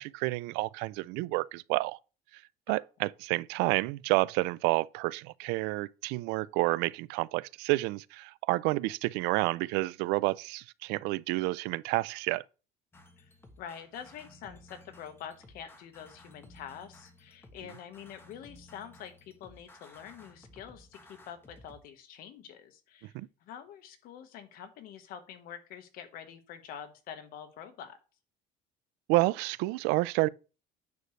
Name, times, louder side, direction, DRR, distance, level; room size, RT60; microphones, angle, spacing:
voice 1, 0.0-2.0 2.3-2.4 2.7-12.4 23.0-23.3 29.1-30.3, right 21 dB, 85° right, 0.4 m, -29 dB
sound 1, 12.9-21.8, left 1 dB, 15° left, 1.2 m, -56 dB
voice 2, 13.6-23.1 23.4-28.0, left 9 dB, 60° left, 1.4 m, -46 dB
9.2 x 6.3 x 3.2 m
cardioid pair, 145°, 17 cm